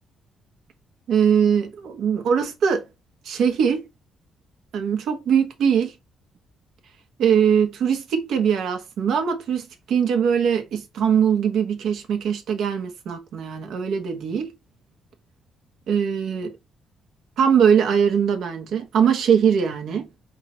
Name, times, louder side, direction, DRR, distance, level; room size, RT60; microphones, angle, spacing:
voice 1, 1.1-2.8 3.2-3.9 4.7-5.9 7.2-14.5 15.9-16.5 17.4-20.1, right 7 dB, 75° right, 1.2 m, -21 dB
4.3 x 3.7 x 2.8 m
cardioid pair, 90°, 0 cm